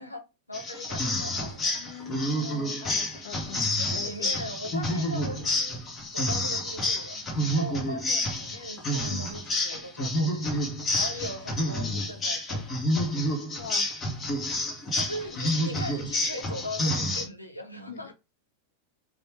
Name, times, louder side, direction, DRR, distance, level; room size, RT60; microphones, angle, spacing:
voice 1, 0.0-1.8 3.8-5.8 6.1-10.5 10.9-12.8 14.9-18.1, equal, 85° left, 1.3 m, -39 dB
sound 1, 0.5-17.3, left 1 dB, 20° left, 2.1 m, -29 dB
voice 2, 1.2-4.5 9.1-9.2 13.6-14.1 15.3-15.5 17.9-18.1, left 7 dB, 55° left, 1.2 m, -43 dB
5.4 x 5.3 x 3.3 m
figure-of-eight pair, 90°, 0 cm